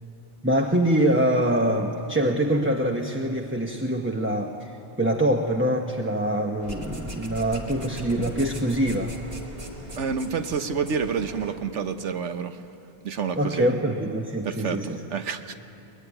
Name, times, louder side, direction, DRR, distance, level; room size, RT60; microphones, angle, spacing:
voice 1, 0.4-9.1 13.4-15.0, right 1 dB, 10° right, 2 dB, 1.0 m, -24 dB
sound 1, 6.6-11.6, equal, 35° right, 2.2 m, -39 dB
voice 2, 10.0-12.6 13.0-13.7 14.4-15.6, right 6 dB, 80° right, 9 dB, 1.4 m, -29 dB
23.0 x 20.5 x 10.0 m, 2.8 s
omnidirectional pair, 1.2 m